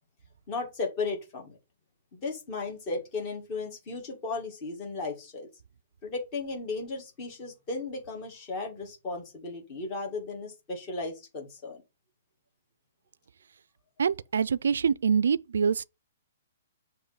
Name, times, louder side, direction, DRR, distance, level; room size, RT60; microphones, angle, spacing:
voice 1, 0.5-1.6 2.1-5.5 6.0-11.8, left 3 dB, 20° left, 2.0 m, -35 dB
voice 2, 14.0-15.8, right 6 dB, 90° right, 0.4 m, -25 dB
6.9 x 3.1 x 5.7 m
hypercardioid pair, 175°, 0 cm